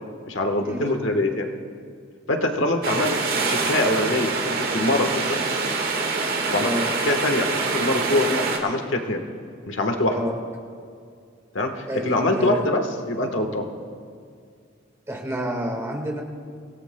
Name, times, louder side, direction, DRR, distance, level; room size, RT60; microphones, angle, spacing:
voice 1, 0.3-1.5 2.3-3.1 3.5-5.1 6.5-6.7 7.0-7.5 7.7-9.2 9.7-10.2 11.5-13.6, left 2 dB, 70° left, 4 dB, 1.3 m, -23 dB
sound 1, 2.8-8.6, right 4 dB, 50° right, 1.7 m, -25 dB
voice 2, 11.9-12.7 15.1-16.2, equal, 15° right, 0 dB, 1.6 m, -28 dB
26.0 x 17.0 x 2.2 m, 2.3 s
head